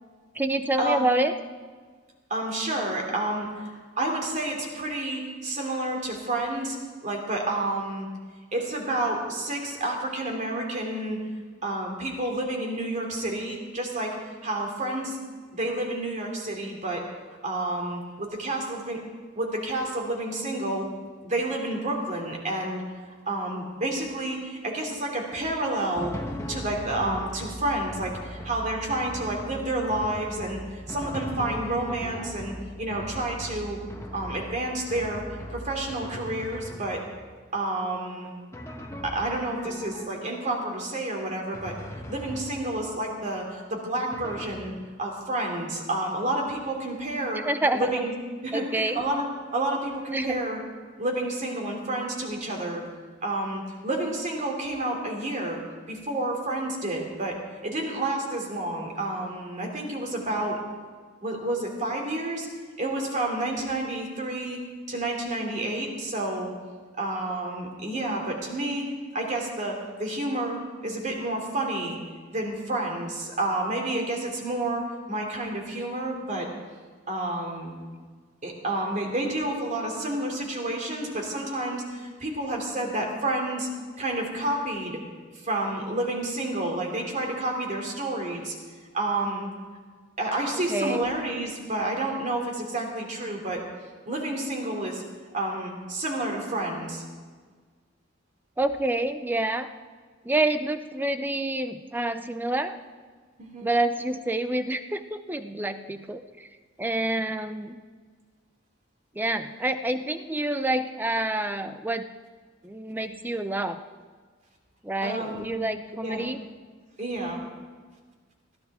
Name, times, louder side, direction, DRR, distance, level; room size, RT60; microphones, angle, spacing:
voice 1, 0.3-1.3 47.3-47.9 48.5-49.0 50.1-50.4 90.7-91.1 98.6-99.7 100.2-102.8 103.6-106.5 106.8-107.8 109.1-112.1 112.6-113.8 114.8-116.4, right 1 dB, 10° right, 9 dB, 0.6 m, -27 dB
voice 2, 2.3-8.1 8.5-11.2 11.6-14.1 14.4-15.2 15.5-17.0 17.4-19.0 19.4-20.9 21.2-22.8 23.3-26.1 26.5-33.8 34.1-35.2 35.5-37.0 37.5-38.3 39.0-41.8 42.1-44.7 45.0-47.4 47.7-48.1 48.4-49.2 49.5-50.6 51.0-52.8 53.2-55.6 55.9-57.4 57.6-60.6 61.2-62.5 62.8-64.6 64.9-66.5 67.0-72.0 72.3-76.5 77.1-77.7 78.4-83.7 84.0-85.0 85.4-88.5 88.9-89.5 90.2-93.6 94.1-95.0 95.3-97.0 103.4-103.7 115.0-115.4 116.0-116.3 117.0-117.4, right 1 dB, 40° right, 1 dB, 2.9 m, -30 dB
Drum, 25.9-37.3 38.5-40.5 41.5-43.0 44.1-44.5, equal, 15° left, 1.2 m, -39 dB
21.0 x 14.5 x 3.6 m, 1.5 s
head